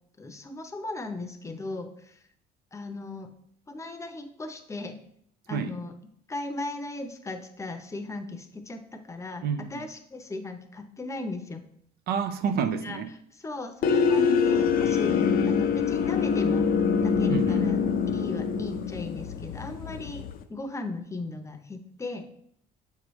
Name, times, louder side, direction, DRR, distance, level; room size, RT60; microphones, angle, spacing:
voice 1, 0.2-2.1 2.7-3.3 3.7-5.0 5.5-5.9 6.3-9.4 9.7-11.6 12.8-13.0 13.4-16.7 17.0-17.8 18.1-20.2 20.5-22.2, left 2 dB, 15° left, 7 dB, 0.7 m, -37 dB
voice 2, 9.4-9.9 12.1-13.1 17.3-17.7, right 7 dB, 70° right, 8 dB, 0.6 m, -29 dB
sound 1, 13.8-20.4, left 6 dB, 60° left, 0.5 m, -24 dB
7.1 x 4.7 x 3.1 m, 0.69 s
cardioid pair, 110°, 17 cm